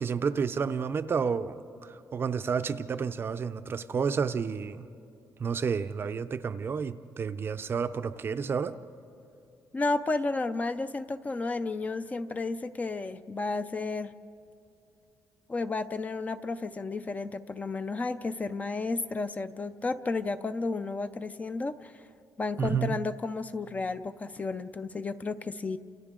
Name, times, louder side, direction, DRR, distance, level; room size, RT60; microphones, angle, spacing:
voice 1, 0.0-4.9 5.4-8.8 22.6-23.0, right 6 dB, 35° right, 0.5 m, -30 dB
voice 2, 9.7-14.1 15.5-21.9 22.4-25.8, left 3 dB, 20° left, 0.4 m, -32 dB
29.5 x 27.5 x 3.7 m
cardioid pair, 165°, 7 cm